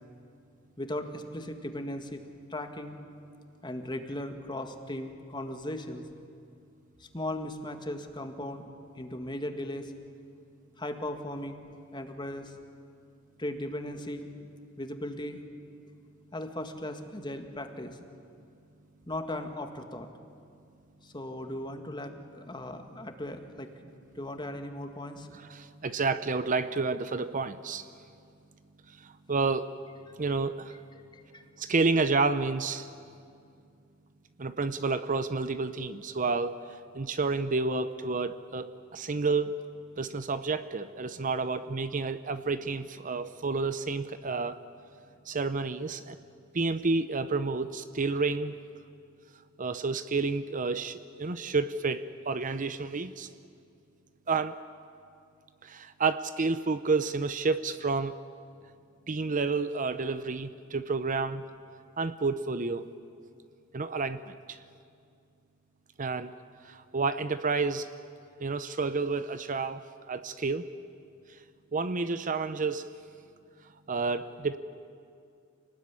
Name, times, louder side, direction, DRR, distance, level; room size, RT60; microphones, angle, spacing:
voice 1, 0.8-2.2 2.5-3.0 3.6-6.0 7.0-8.7 9.0-9.9 10.8-11.7 11.9-12.5 13.4-14.3 14.8-15.4 16.3-18.0 19.1-20.1 21.0-23.7 24.2-25.3 31.1-31.4, left 1 dB, 20° left, 6 dB, 1.9 m, -37 dB
voice 2, 25.5-27.9 28.9-29.7 30.2-30.8 31.6-32.9 34.4-36.6 36.9-39.6 40.0-44.6 45.3-46.2 46.5-48.6 49.6-53.3 54.3-54.6 55.6-58.1 59.1-61.4 62.0-62.9 63.7-64.6 66.0-66.3 66.6-67.9 68.4-70.7 71.7-72.9 73.9-74.6, right 4 dB, 40° right, 12 dB, 0.7 m, -30 dB
28.0 x 19.0 x 9.8 m, 2.4 s
head